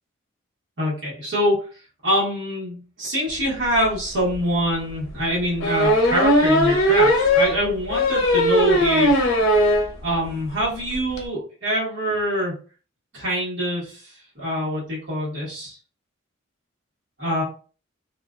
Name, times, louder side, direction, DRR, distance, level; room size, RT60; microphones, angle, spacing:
voice 1, 0.8-1.6 2.0-9.2 9.5-9.7 10.0-12.5 13.1-15.8 17.2-17.4, equal, 60° right, -6 dB, 1.1 m, -25 dB
sound 1, 3.8-3.9 4.3-4.4 5.6-9.9 10.3-10.4 10.6-10.7 10.9-11.2, equal, 90° left, 0.6 m, -18 dB
2.4 x 2.2 x 2.4 m, 0.37 s
head